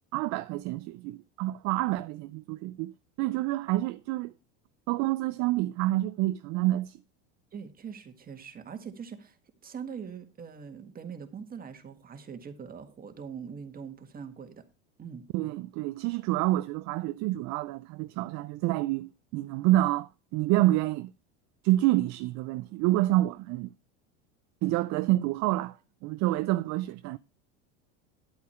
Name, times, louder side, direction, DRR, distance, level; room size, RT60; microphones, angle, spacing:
voice 1, 0.1-2.9 3.2-4.3 4.9-7.0 15.3-21.1 21.6-23.7 24.6-25.8 26.0-27.2, right 17 dB, 50° right, 0.5 m, -28 dB
voice 2, 7.5-9.4 9.6-14.7 15.0-15.3, right 6 dB, 25° right, 1.7 m, -42 dB
10.5 x 8.5 x 4.3 m
supercardioid pair, 115°, 36 cm